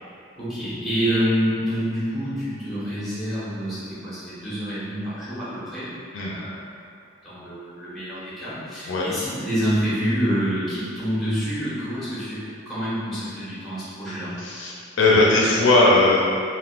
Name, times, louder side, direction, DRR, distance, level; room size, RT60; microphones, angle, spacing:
voice 1, 0.4-6.6 7.2-12.4 12.7-14.3, equal, ahead, -12 dB, 1.2 m, -27 dB
voice 2, 14.4-16.2, left 2 dB, 65° left, -4 dB, 0.4 m, -18 dB
3.5 x 2.4 x 2.4 m, 2.3 s
head